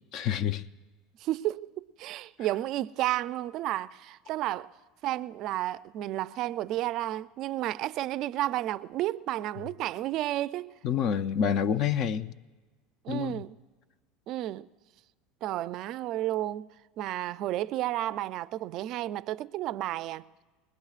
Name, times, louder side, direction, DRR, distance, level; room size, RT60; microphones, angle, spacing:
voice 1, 0.1-0.6 10.8-12.3 13.1-13.4, left 8 dB, 50° left, 0.5 m, -28 dB
voice 2, 1.2-4.7 5.0-10.8 13.0-13.6 14.3-14.7 15.4-16.7 17.0-20.2, right 14 dB, 55° right, 0.3 m, -32 dB
23.5 x 20.0 x 2.4 m
supercardioid pair, 110°, 0 cm